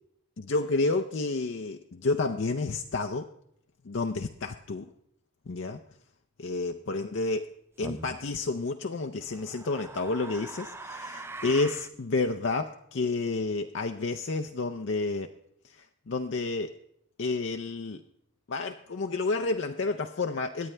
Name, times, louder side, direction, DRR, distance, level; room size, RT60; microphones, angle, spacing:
voice 1, 0.4-3.3 3.8-4.9 5.5-5.8 6.4-7.5 7.8-15.3 15.6-16.7 17.2-18.0 18.5-20.7, left 3 dB, 55° left, 6 dB, 0.5 m, -30 dB
sound 1, 7.8-8.2 9.2-12.0, right 2 dB, 10° right, 0.4 m, -42 dB
23.0 x 9.5 x 3.3 m, 0.73 s
head